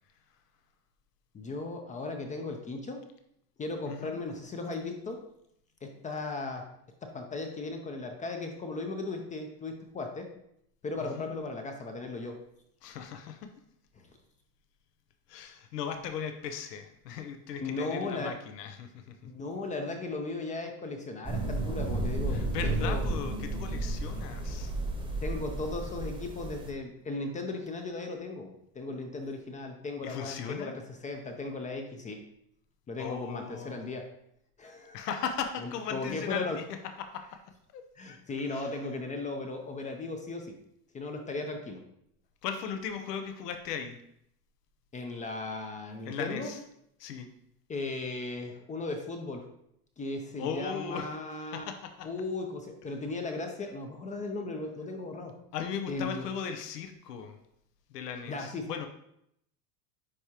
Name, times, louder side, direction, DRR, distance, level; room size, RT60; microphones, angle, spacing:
voice 1, 1.3-3.0 3.6-5.2 5.8-6.7 7.0-10.3 10.8-12.4 14.0-14.1 17.6-18.4 19.2-23.0 25.2-32.2 32.9-34.1 34.6-35.0 35.6-36.6 38.0-40.5 40.9-41.8 44.9-46.6 47.7-49.5 50.0-51.6 52.0-55.3 55.9-56.3 58.3-58.7, left 3 dB, 15° left, 4 dB, 0.5 m, -36 dB
voice 2, 3.9-4.2 11.0-11.3 12.8-13.5 15.3-19.2 22.3-24.7 30.0-30.8 33.0-33.9 34.9-37.4 37.7-38.2 38.5-38.8 42.4-44.0 46.0-46.6 47.0-47.3 50.4-52.1 55.5-57.4 57.9-58.9, left 7 dB, 90° left, 7 dB, 0.8 m, -38 dB
sound 1, 21.2-26.7, right 2 dB, 10° right, 0.9 m, -32 dB
9.6 x 3.5 x 2.9 m, 0.75 s
supercardioid pair, 120°, 46 cm